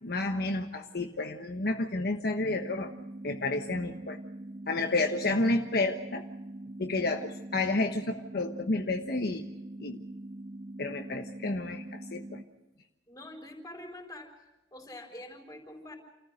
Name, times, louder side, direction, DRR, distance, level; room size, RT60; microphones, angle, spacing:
voice 1, 0.0-2.9 3.2-4.2 4.7-6.3 6.8-9.4 9.8-10.0 10.8-12.4, left 2 dB, 60° left, 3 dB, 1.2 m, -30 dB
sound 1, 2.4-12.4, right 1 dB, 70° right, 1.6 m, -43 dB
voice 2, 13.1-14.3 14.7-16.0, left 1 dB, 20° left, 2 dB, 4.5 m, -45 dB
28.5 x 14.5 x 6.5 m, 0.99 s
head